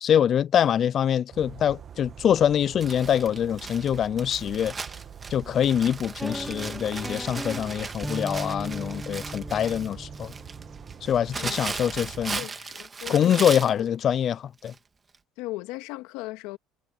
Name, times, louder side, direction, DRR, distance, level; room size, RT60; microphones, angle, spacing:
voice 1, 0.0-4.7 5.3-10.3 11.0-12.4 13.1-14.7, left 9 dB, 50° left, 0.4 m, -24 dB
sound 1, 1.3-12.4, right 8 dB, 45° right, 1.8 m, -44 dB
Crumpling crinkling, 2.8-13.8 14.7-14.8 15.1-15.2, right 4 dB, 25° right, 2.3 m, -37 dB
sound 2, 6.2-12.2, equal, ahead, 0.7 m, -38 dB
voice 2, 12.3-13.4 13.8-13.9 15.4-16.6, left 20 dB, 80° left, 2.1 m, -37 dB
supercardioid pair, 85°, 0 cm